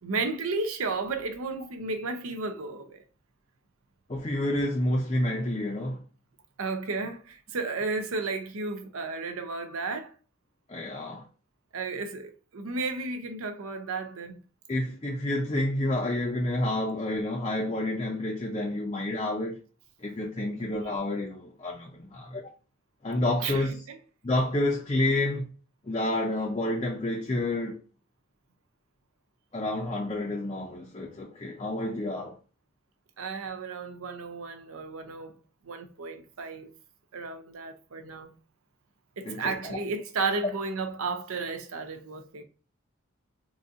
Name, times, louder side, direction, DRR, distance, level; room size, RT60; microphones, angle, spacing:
voice 1, 0.0-3.0 6.6-10.1 11.7-14.4 23.4-24.0 33.2-35.3 35.6-36.7 37.1-38.3 39.2-42.4, right 3 dB, 90° right, 0.6 m, -33 dB
voice 2, 4.1-6.0 10.7-11.2 14.7-19.6 20.0-22.4 23.0-23.8 24.2-25.5 25.8-27.8 29.5-32.4 39.3-39.8, left 1 dB, 25° left, 0.5 m, -29 dB
3.9 x 2.6 x 2.4 m
head